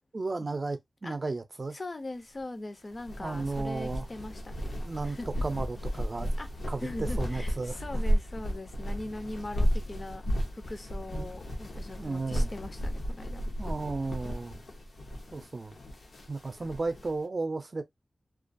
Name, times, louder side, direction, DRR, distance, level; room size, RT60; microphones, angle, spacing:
voice 1, 0.1-1.8 3.2-4.1 4.8-6.3 6.7-8.0 11.1-11.3 12.0-12.5 13.6-14.6 15.3-15.7 16.3-17.8, right 3 dB, 40° right, 0.4 m, -34 dB
voice 2, 1.7-4.7 5.0-5.3 6.4-6.5 6.8-10.2 10.5-13.4, left 2 dB, 40° left, 0.5 m, -41 dB
sound 1, 2.9-17.1, equal, 85° left, 0.6 m, -33 dB
2.3 x 2.2 x 2.5 m
wide cardioid pair, 105°, 0 cm